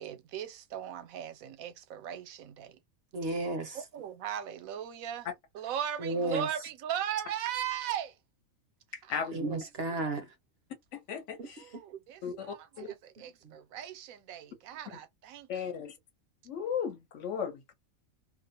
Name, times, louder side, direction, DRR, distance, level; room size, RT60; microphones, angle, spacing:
voice 1, 0.0-2.8 3.7-5.3 5.5-8.2 9.0-9.1 11.6-15.5, right 10 dB, 80° right, 1.0 m, -38 dB
voice 2, 3.1-3.8 6.0-6.7 9.3-10.3 11.4-11.8 13.2-13.5, right 2 dB, 60° right, 0.8 m, -34 dB
voice 3, 9.1-9.5 10.9-11.6 12.2-12.9 15.5-15.9 16.5-17.7, left 7 dB, 65° left, 1.0 m, -36 dB
2.5 x 2.0 x 2.7 m
omnidirectional pair, 1.4 m